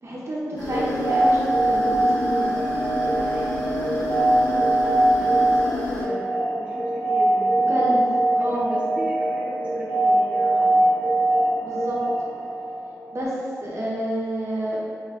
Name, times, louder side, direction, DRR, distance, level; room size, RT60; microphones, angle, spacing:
voice 1, 0.0-2.5 7.7-8.0 8.3-8.7 11.6-12.0 13.1-13.3 13.6-14.9, right 1 dB, 50° right, -5 dB, 0.8 m, -28 dB
sound 1, 0.6-6.0, left 2 dB, 90° left, 0.6 m, -30 dB
sound 2, 0.6-13.4, right 1 dB, 85° right, 0.7 m, -22 dB
voice 2, 3.0-7.9 8.3-11.0, right 1 dB, 20° right, -5 dB, 0.4 m, -37 dB
3.0 x 2.2 x 3.5 m, 2.1 s
cardioid pair, 50°, 6 cm